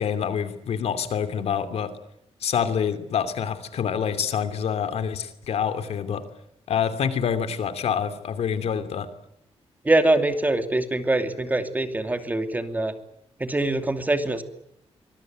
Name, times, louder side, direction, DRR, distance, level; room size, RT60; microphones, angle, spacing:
voice 1, 0.0-1.9 2.4-6.2 6.7-9.1, left 7 dB, 75° left, 10 dB, 2.8 m, -26 dB
voice 2, 9.8-13.0 13.4-14.4, right 2 dB, 15° right, 8 dB, 2.6 m, -23 dB
24.5 x 22.5 x 9.3 m, 0.77 s
wide cardioid pair, 150°, 11 cm